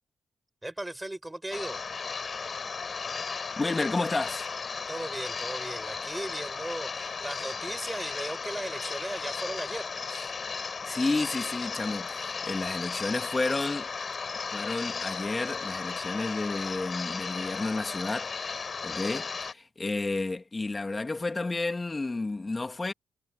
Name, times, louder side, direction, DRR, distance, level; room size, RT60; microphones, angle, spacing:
voice 1, 0.6-1.8 4.9-10.3, right 1 dB, 15° right, 7.9 m, -37 dB
sound 1, 1.5-19.5, left 5 dB, 45° left, 4.9 m, -35 dB
voice 2, 3.6-4.6 10.8-13.9 14.5-22.9, left 3 dB, 30° left, 2.6 m, -31 dB
cardioid pair, 65°, 0 cm